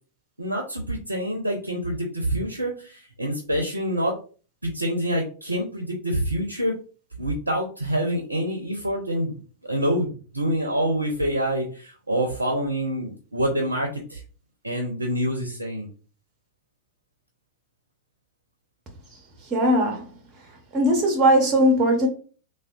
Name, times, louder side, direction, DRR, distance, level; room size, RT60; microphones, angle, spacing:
voice 1, 0.4-4.2 4.6-6.7 7.2-9.4 9.7-14.2 14.6-15.9, equal, 80° right, 0.5 m, -26 dB
voice 2, 19.5-20.0 20.7-22.1, equal, 30° right, 0.7 m, -19 dB
3.5 x 2.2 x 2.3 m
figure-of-eight pair, 90°, 0 cm